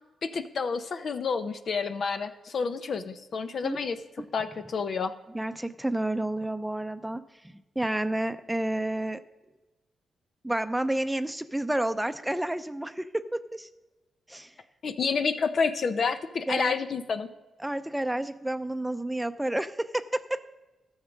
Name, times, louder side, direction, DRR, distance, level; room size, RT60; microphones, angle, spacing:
voice 1, 0.2-4.0 4.3-5.1 14.8-17.3, left 5 dB, 60° left, 9 dB, 0.7 m, -29 dB
voice 2, 5.3-9.2 10.4-13.7 14.3-14.5 16.5-16.7 17.6-20.4, right 1 dB, 10° right, 10 dB, 0.6 m, -30 dB
13.0 x 7.3 x 5.2 m, 1.1 s
cardioid pair, 60°, 0 cm